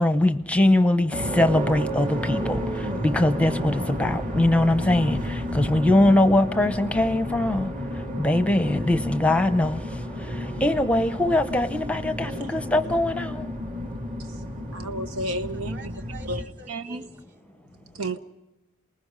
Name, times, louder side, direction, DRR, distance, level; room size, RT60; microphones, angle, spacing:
voice 1, 0.0-7.7 8.2-9.8 10.2-13.5, left 1 dB, 5° left, 0.7 m, -22 dB
sound 1, 1.1-16.4, equal, 40° right, 2.3 m, -31 dB
voice 2, 14.7-15.9 16.2-17.1 17.9-18.2, right 1 dB, 90° right, 1.0 m, -32 dB
voice 3, 15.5-18.0, right 2 dB, 55° right, 3.0 m, -48 dB
28.5 x 20.0 x 5.5 m
head